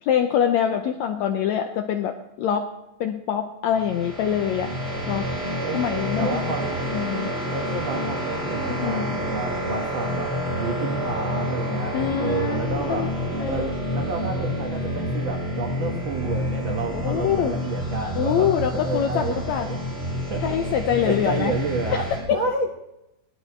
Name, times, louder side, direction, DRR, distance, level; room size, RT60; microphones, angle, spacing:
voice 1, 0.0-2.7 3.0-4.7 5.1-5.2 5.7-6.4 6.9-7.3 8.6-9.2 11.9-13.1 13.4-13.7 16.9-17.5 18.1-19.7 20.4-21.5 21.9-22.4, left 9 dB, 85° left, 5 dB, 1.6 m, -24 dB
sound 1, 3.7-22.2, equal, ahead, 5.4 m, -28 dB
voice 2, 4.7-5.2 5.6-5.8 6.2-7.2 7.5-13.2 13.4-19.8 20.3-20.8 21.0-22.7, right 3 dB, 85° right, 2 dB, 1.0 m, -31 dB
18.5 x 12.5 x 4.5 m, 0.90 s
omnidirectional pair, 4.0 m